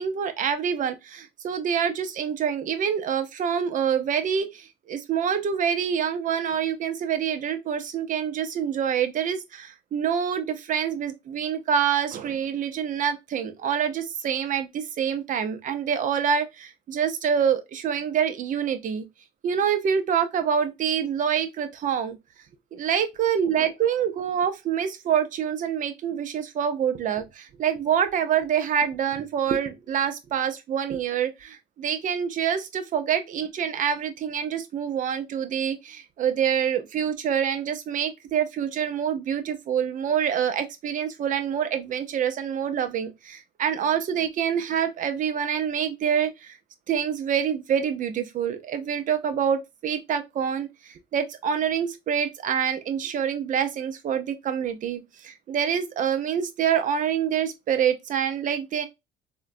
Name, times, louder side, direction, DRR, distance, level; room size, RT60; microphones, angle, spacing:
voice 1, 0.0-19.0 19.4-22.2 22.7-46.6 46.9-58.9, right 8 dB, 50° right, 0.6 m, -26 dB
3.6 x 2.2 x 2.5 m
cardioid pair, 110°, 17 cm